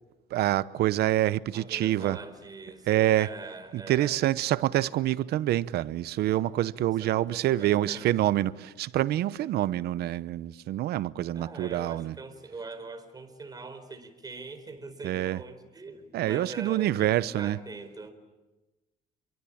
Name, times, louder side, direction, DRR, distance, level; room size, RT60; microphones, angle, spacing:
voice 1, 0.3-2.2 2.9-3.3 3.7-12.2 15.0-15.4 16.1-17.6, right 14 dB, 70° right, 0.9 m, -26 dB
voice 2, 1.5-4.2 7.0-8.4 11.3-17.1 17.4-18.1, right 3 dB, 25° right, 4.4 m, -43 dB
28.0 x 23.5 x 8.7 m
cardioid pair, 110°, 17 cm